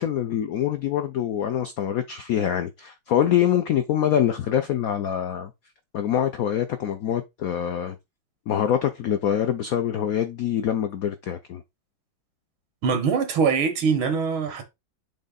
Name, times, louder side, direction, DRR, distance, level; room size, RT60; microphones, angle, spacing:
voice 1, 0.0-5.5 5.9-8.0 8.5-11.6, left 10 dB, 85° left, 0.7 m, -25 dB
voice 2, 12.8-14.6, right 5 dB, 85° right, 2.2 m, -23 dB
7.2 x 3.3 x 4.0 m
omnidirectional pair, 2.2 m